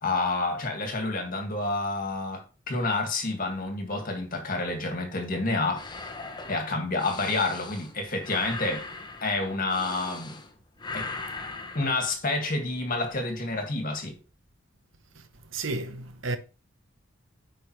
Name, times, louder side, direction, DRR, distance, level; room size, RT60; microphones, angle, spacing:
voice 1, 0.0-5.9 6.5-8.8 9.2-10.4 10.9-11.1 11.7-14.2, left 2 dB, 45° left, 1.9 m, -29 dB
sound 1, 5.8-10.5 10.8-12.0, left 3 dB, 25° left, 0.9 m, -39 dB
voice 2, 15.1-16.4, right 3 dB, 75° right, 0.9 m, -33 dB
8.7 x 5.1 x 3.1 m
head